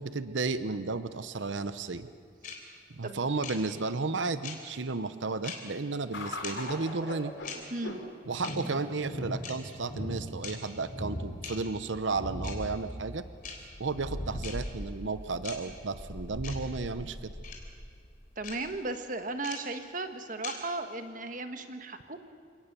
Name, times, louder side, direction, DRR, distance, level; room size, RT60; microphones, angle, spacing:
voice 1, 0.0-2.1 2.9-7.3 8.3-13.2 13.8-17.3, right 3 dB, 85° right, 12 dB, 0.9 m, -33 dB
sound 1, 2.4-2.6 3.4-3.6 4.4-4.6 5.4-5.6 6.4-6.5 7.4-7.6 8.4-8.6 9.4-9.5 10.4-10.5 11.4-11.6 12.4-12.5 13.4-13.5 14.4-14.5 15.4-15.6 16.4-16.6 17.4-17.6 18.4-18.6 19.4-19.6 20.4-20.5, left 7 dB, 45° left, 3.7 m, -39 dB
sound 2, 6.1-18.7, equal, 85° left, 4.2 m, -40 dB
voice 2, 7.7-8.0 18.4-22.2, right 2 dB, 45° right, 7 dB, 1.5 m, -36 dB
29.0 x 18.0 x 6.9 m, 2.3 s
head